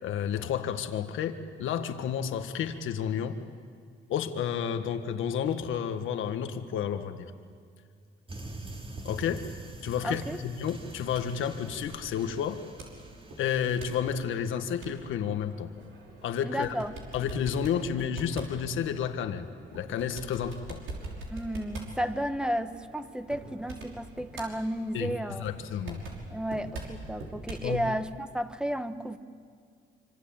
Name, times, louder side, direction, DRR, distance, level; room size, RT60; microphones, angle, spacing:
voice 1, 0.0-3.4 4.1-7.3 9.0-9.5 9.8-12.6 13.4-15.7 16.2-16.7 17.1-19.5 19.7-20.8 24.9-25.1 25.4-26.0 27.6-27.9, left 8 dB, 80° left, 7 dB, 1.7 m, -31 dB
sound 1, 8.3-14.5, right 2 dB, 25° right, 3.0 m, -44 dB
voice 2, 10.0-10.4 16.4-17.0 21.3-25.4 26.3-29.2, equal, 5° right, 9 dB, 1.4 m, -33 dB
sound 2, 10.8-27.7, right 2 dB, 80° right, 5.8 m, -45 dB
26.0 x 25.5 x 8.9 m, 2.2 s
cardioid pair, 90°, 20 cm